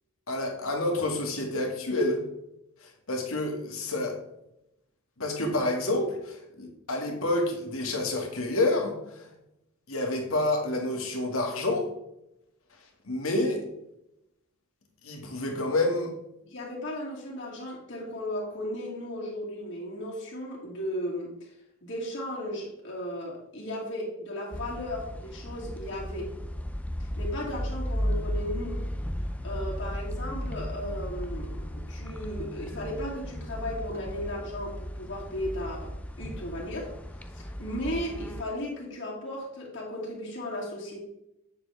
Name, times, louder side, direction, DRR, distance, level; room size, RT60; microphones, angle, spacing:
voice 1, 0.3-2.2 2.8-4.2 5.2-9.3 9.9-11.9 13.1-13.6 15.0-16.1, left 2 dB, 70° left, 1 dB, 1.9 m, -28 dB
voice 2, 16.4-21.3 21.8-26.3 27.0-28.8 29.4-37.0 37.3-41.0, left 1 dB, 50° left, -4 dB, 2.5 m, -35 dB
sound 1, 24.5-38.4, equal, 5° left, 0.3 m, -35 dB
8.8 x 6.7 x 3.4 m, 0.83 s
head